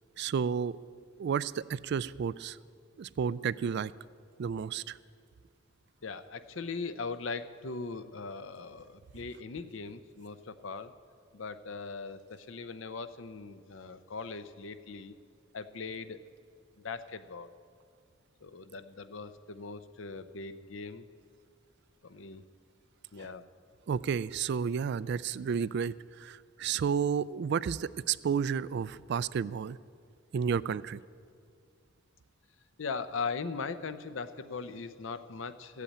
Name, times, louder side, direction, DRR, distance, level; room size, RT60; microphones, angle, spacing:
voice 1, 0.2-0.8 1.2-2.6 3.0-3.9 4.4-5.0 23.9-25.9 26.2-29.8 30.3-31.0, right 7 dB, 55° right, 18 dB, 0.3 m, -31 dB
voice 2, 6.0-10.9 11.3-15.2 15.5-16.2 16.8-17.5 18.4-21.1 22.0-22.4 23.1-23.5 32.8-35.8, left 4 dB, 70° left, 12 dB, 0.7 m, -40 dB
14.5 x 8.4 x 8.7 m, 2.1 s
head